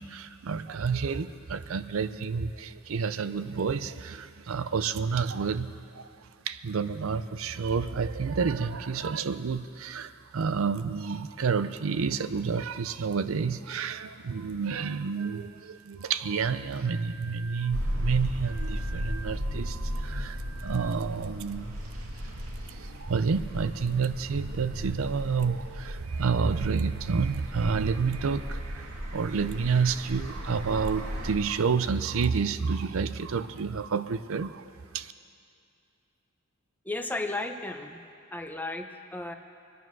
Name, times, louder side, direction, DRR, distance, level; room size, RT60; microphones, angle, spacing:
voice 1, 0.0-21.8 22.2-22.3 22.7-35.1, right 5 dB, 70° right, 12 dB, 0.5 m, -29 dB
sound 1, 17.7-31.4, equal, 90° right, 2.3 m, -36 dB
voice 2, 36.8-38.0 38.3-39.3, left 2 dB, 10° left, 5 dB, 0.8 m, -34 dB
24.5 x 9.4 x 6.1 m, 2.5 s
head